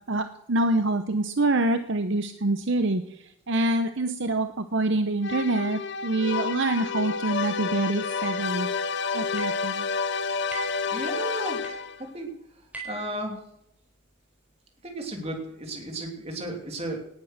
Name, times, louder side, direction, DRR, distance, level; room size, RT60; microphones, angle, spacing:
voice 1, 0.1-8.7 9.1-9.8, right 2 dB, 55° right, 9 dB, 0.8 m, -26 dB
sound 1, 5.2-12.1, left 5 dB, 55° left, 0.7 m, -29 dB
sound 2, 8.2-8.5 9.4-9.7 10.5-10.9 11.6-11.9 12.7-13.1, right 3 dB, 5° right, 4.2 m, -40 dB
voice 2, 10.9-11.6 12.0-12.3 12.8-13.4 14.8-17.1, right 1 dB, 30° right, 2 dB, 3.1 m, -34 dB
19.0 x 9.2 x 6.5 m, 0.80 s
head